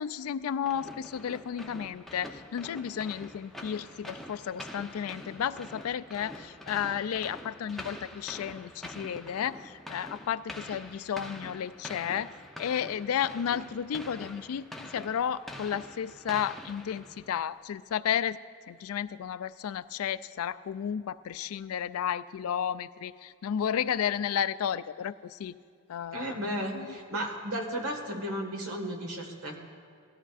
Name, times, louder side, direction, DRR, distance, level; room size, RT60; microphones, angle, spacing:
voice 1, 0.0-12.3 12.6-18.4 18.7-25.6 25.9-27.0, left 8 dB, 80° left, 15 dB, 0.3 m, -33 dB
sound 1, 0.7-17.4, left 1 dB, ahead, 0.7 m, -45 dB
voice 2, 26.1-29.6, equal, 90° right, 3 dB, 1.7 m, -34 dB
18.0 x 13.5 x 2.5 m, 2.3 s
head